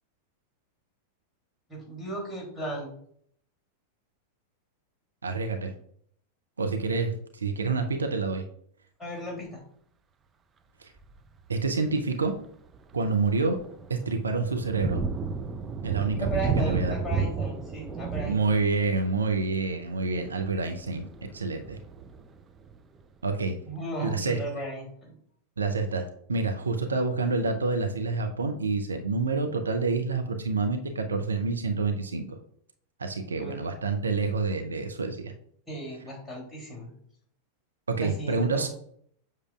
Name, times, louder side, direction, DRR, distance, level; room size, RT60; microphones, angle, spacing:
voice 1, 1.7-2.9 9.0-9.6 16.2-18.4 23.7-25.2 33.4-33.6 35.7-36.9 38.0-38.7, right 1 dB, 5° left, -3 dB, 3.0 m, -36 dB
voice 2, 5.2-5.7 6.6-8.4 10.8-10.9 11.5-12.4 12.9-13.6 13.9-15.0 15.8-16.3 16.7-17.0 18.2-21.8 23.2-23.6 24.0-24.4 25.6-32.2 33.0-35.3 37.9-38.7, right 4 dB, 75° right, 6 dB, 0.6 m, -28 dB
Thunder, 11.0-11.3 11.9-12.0 12.5-23.0, right 5 dB, 20° right, 0.5 m, -33 dB
7.4 x 6.4 x 2.4 m, 0.65 s
figure-of-eight pair, 90°, 0 cm